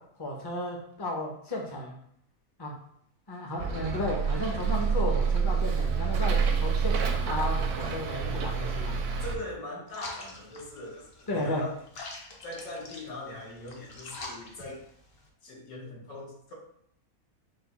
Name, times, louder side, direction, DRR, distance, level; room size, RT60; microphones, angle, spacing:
voice 1, 0.2-2.0 2.6-2.7 3.3-8.9 11.3-11.6, left 1 dB, 25° left, -1 dB, 0.5 m, -34 dB
Bus, 3.6-9.4, right 5 dB, 70° right, 0.8 m, -27 dB
voice 2, 9.2-11.8 12.4-14.8 15.4-16.5, left 1 dB, 75° left, -2 dB, 1.5 m, -41 dB
sound 1, 9.9-15.3, left 2 dB, 50° left, 0.9 m, -45 dB
5.0 x 2.2 x 4.0 m, 0.69 s
omnidirectional pair, 1.5 m